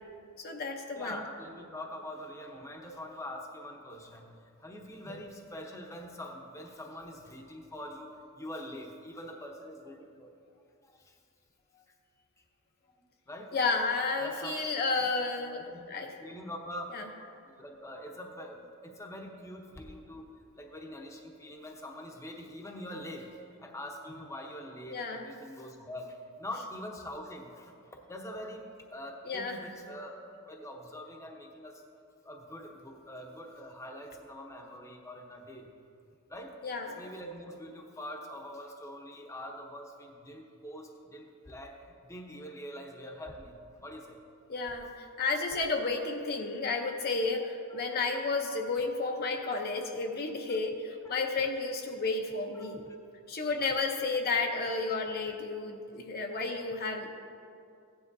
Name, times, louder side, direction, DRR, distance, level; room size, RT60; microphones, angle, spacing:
voice 1, 0.4-1.2 13.5-16.1 16.9-17.0 24.9-25.3 29.3-29.6 36.6-37.0 44.5-52.8 53.3-57.1, left 3 dB, 45° left, 2 dB, 0.8 m, -32 dB
voice 2, 0.9-4.3 4.6-10.3 10.8-11.2 13.3-13.6 14.2-14.6 15.0-15.1 15.5-17.0 17.4-20.2 20.5-23.3 23.6-31.8 32.2-35.7 36.3-36.5 36.8-44.2 50.5-50.6 51.0-51.2 52.5-53.0 54.6-54.7, left 1 dB, 15° left, 1 dB, 0.9 m, -44 dB
16.0 x 9.9 x 2.7 m, 2.4 s
head